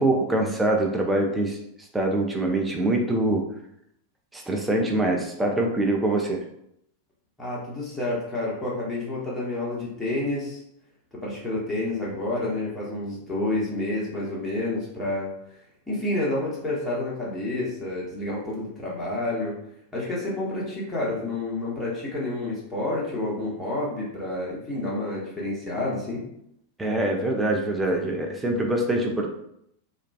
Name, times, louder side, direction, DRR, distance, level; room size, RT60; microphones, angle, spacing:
voice 1, 0.0-1.6 1.9-3.4 4.3-6.4 26.8-29.3, right 1 dB, 10° right, 1 dB, 0.4 m, -24 dB
voice 2, 7.4-10.6 11.1-15.3 15.9-19.6 19.9-26.3, left 2 dB, 10° left, -6 dB, 0.8 m, -29 dB
2.4 x 2.2 x 2.3 m, 0.75 s
figure-of-eight pair, 90°, 0 cm